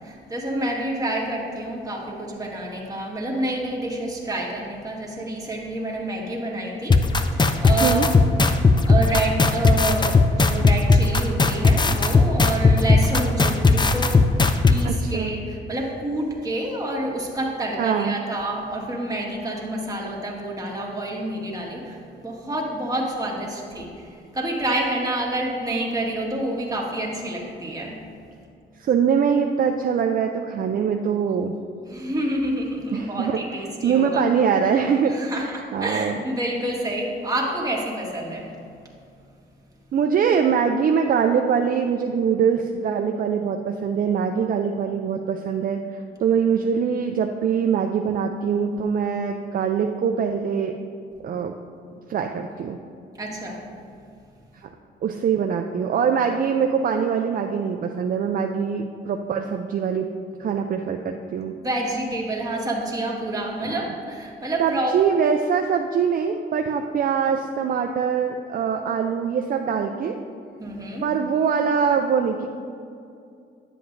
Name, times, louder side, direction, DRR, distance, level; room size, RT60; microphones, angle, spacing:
voice 1, 0.0-7.0 7.3-8.2 8.9-14.2 14.7-28.0 31.9-34.2 35.1-38.5 53.2-53.6 61.5-64.9 70.6-71.1, right 1 dB, 20° right, -2 dB, 1.7 m, -28 dB
sound 1, 6.9-14.8, left 3 dB, 20° left, 0.5 m, -16 dB
voice 2, 14.8-15.3 17.8-18.2 28.8-31.5 32.9-36.2 39.9-50.8 51.2-51.6 52.1-52.8 55.0-60.1 60.4-61.5 63.6-63.8 64.6-70.2 71.0-72.5, right 7 dB, 45° right, 4 dB, 0.5 m, -23 dB
10.5 x 7.6 x 2.6 m, 2.4 s
cardioid pair, 90°, 20 cm